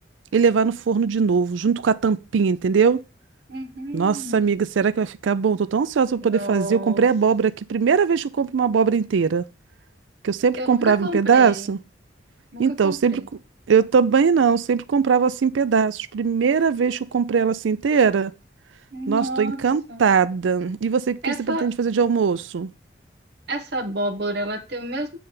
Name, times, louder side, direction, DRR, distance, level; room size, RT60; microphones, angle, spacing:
voice 1, 0.3-3.0 3.9-9.4 10.2-11.8 12.6-13.2 13.7-18.3 19.1-22.7, right 6 dB, 90° right, 0.4 m, -20 dB
voice 2, 3.5-4.6 6.2-7.1 10.6-11.7 12.5-13.3 18.9-19.6 19.9-20.0 21.2-21.7 23.5-25.2, right 1 dB, 60° right, 1.2 m, -30 dB
8.5 x 3.4 x 5.5 m
head